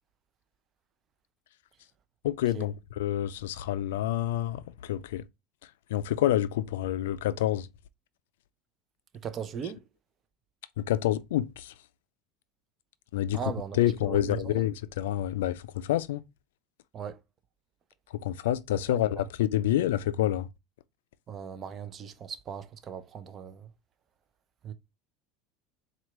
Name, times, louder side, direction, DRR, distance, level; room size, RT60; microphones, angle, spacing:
voice 1, 2.2-5.2 5.9-7.7 10.8-11.7 13.1-13.4 13.7-16.2 18.2-20.5, left 13 dB, 85° left, 0.3 m, -28 dB
voice 2, 9.2-9.8 13.3-14.7 16.9-17.2 18.9-19.3 21.3-23.7 24.6-24.7, right 7 dB, 35° right, 0.6 m, -38 dB
4.4 x 2.4 x 3.0 m
supercardioid pair, 110°, 0 cm